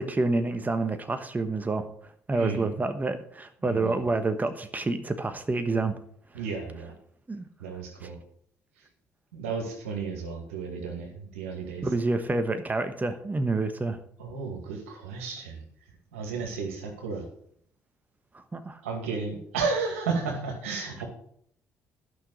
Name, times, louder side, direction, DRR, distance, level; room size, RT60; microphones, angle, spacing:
voice 1, 0.0-1.9 2.3-5.9 7.3-7.5 8.0-8.1 11.8-14.0 18.3-18.8, right 3 dB, 25° right, 8 dB, 1.2 m, -28 dB
voice 2, 2.3-2.7 3.6-4.0 6.3-6.9 7.6-8.2 9.3-11.9 14.2-15.6 16.1-17.3 18.8-21.0, right 4 dB, 85° right, 2 dB, 2.2 m, -33 dB
11.5 x 6.2 x 6.4 m, 0.65 s
hypercardioid pair, 50°, 7 cm